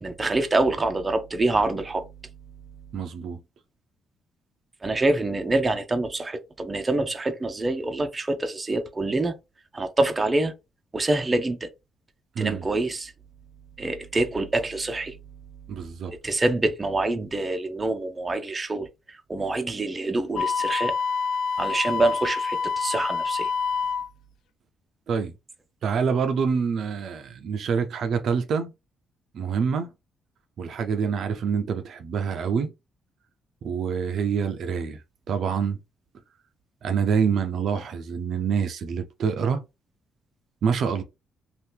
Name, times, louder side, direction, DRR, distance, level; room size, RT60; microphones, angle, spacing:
voice 1, 0.0-2.1 4.8-9.3 9.7-10.5 10.9-11.7 12.4-13.1 13.8-15.1 16.1-20.9 21.6-23.5, right 2 dB, 25° right, 0.6 m, -26 dB
voice 2, 2.9-3.4 12.4-12.6 15.7-16.1 25.1-25.3 25.8-28.7 29.3-29.9 30.6-32.7 33.6-35.0 35.3-35.8 36.8-39.6 40.6-41.0, right 6 dB, 65° right, 0.5 m, -26 dB
Wind instrument woodwind instrument, 20.3-24.1, left 5 dB, 80° left, 0.3 m, -27 dB
2.8 x 2.4 x 3.4 m
cardioid pair, 90°, 0 cm